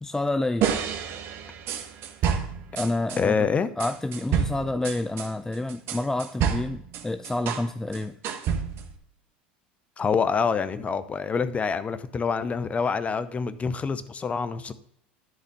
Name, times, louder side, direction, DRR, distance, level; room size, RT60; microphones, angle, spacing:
voice 1, 0.0-0.7 2.7-3.4 3.8-8.2, left 2 dB, 10° left, 0.4 m, -28 dB
sound 1, 0.6-3.2 3.8-7.7 7.9-9.0, right 7 dB, 50° right, 1.1 m, -29 dB
voice 2, 3.2-3.7 10.0-14.7, left 5 dB, 25° left, 0.8 m, -26 dB
11.0 x 4.1 x 6.8 m
hypercardioid pair, 75°, 5 cm